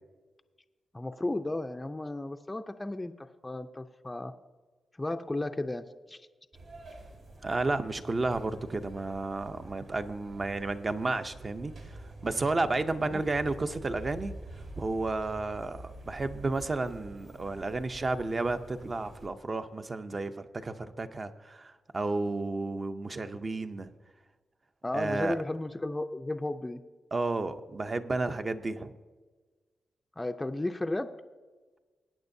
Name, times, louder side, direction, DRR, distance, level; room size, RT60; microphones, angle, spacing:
voice 1, 0.9-4.3 5.0-6.2 13.1-13.3 24.8-26.8 30.2-31.2, left 2 dB, 15° left, 6 dB, 0.4 m, -34 dB
sound 1, 6.5-19.3, right 1 dB, 75° right, 2.2 m, -47 dB
voice 2, 7.4-11.7 12.2-14.3 14.8-23.9 24.9-25.4 27.1-28.9, right 3 dB, 30° right, 9 dB, 0.6 m, -32 dB
20.5 x 8.9 x 2.7 m, 1.4 s
wide cardioid pair, 115°, 0 cm